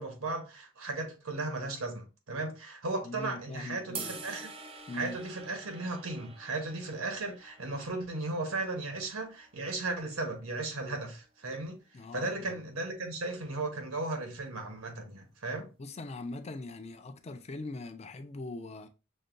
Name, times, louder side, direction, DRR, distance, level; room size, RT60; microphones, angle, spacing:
voice 1, 0.0-4.5 4.9-11.8 12.1-15.7, right 2 dB, 90° right, 1.1 m, -36 dB
voice 2, 3.0-4.2 4.9-5.2 11.9-12.6 15.8-18.9, left 2 dB, 30° left, 0.4 m, -41 dB
sound 1, 3.9-10.2, right 4 dB, 25° right, 0.4 m, -47 dB
6.3 x 2.2 x 2.5 m
head